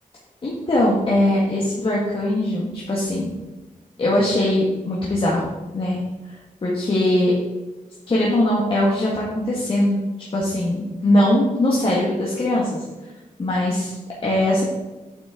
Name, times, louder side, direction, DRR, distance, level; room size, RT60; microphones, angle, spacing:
voice 1, 0.4-3.3 4.0-5.4 5.7-6.0 6.6-7.3 8.1-10.0 10.3-13.1 13.4-14.6, left 1 dB, 40° left, -5 dB, 1.8 m, -21 dB
8.6 x 8.5 x 3.8 m, 1.1 s
wide cardioid pair, 180°, 14 cm